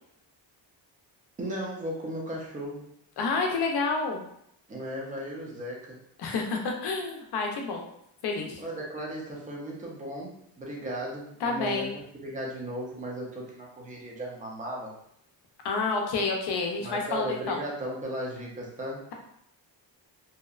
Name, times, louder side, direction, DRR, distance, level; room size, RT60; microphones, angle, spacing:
voice 1, 1.4-2.8 4.7-6.0 8.6-14.9 16.8-19.0, right 1 dB, 20° right, -3 dB, 0.5 m, -36 dB
voice 2, 3.2-4.2 6.2-7.9 8.2-8.6 11.4-11.9 15.6-17.6, left 4 dB, 60° left, 1 dB, 0.6 m, -29 dB
2.7 x 2.0 x 2.3 m, 0.73 s
cardioid pair, 145°, 44 cm